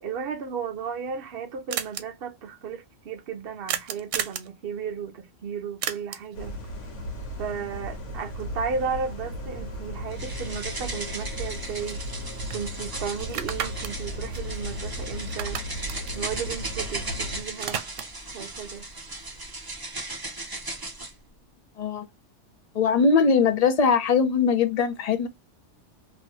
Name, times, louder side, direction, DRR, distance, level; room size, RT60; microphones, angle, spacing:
voice 1, 0.0-6.6 7.4-12.0 12.5-15.6 16.1-17.8 18.3-18.9, right 6 dB, 60° right, 0.8 m, -34 dB
sound 1, 0.8-0.9 1.0-1.1 1.3-1.4 1.7-2.0 3.7-4.5 5.8-6.4 10.6-10.7 11.0-12.2 12.5-12.6 13.2-15.0 15.3-17.1 17.4-18.3, right 9 dB, 85° right, 0.9 m, -34 dB
sound 2, 6.3-17.4, equal, 75° left, 1.4 m, -36 dB
sound 3, 10.1-21.1, right 2 dB, 20° right, 0.7 m, -37 dB
voice 2, 22.7-25.3, left 5 dB, 55° left, 0.4 m, -21 dB
2.9 x 2.7 x 2.9 m
omnidirectional pair, 1.3 m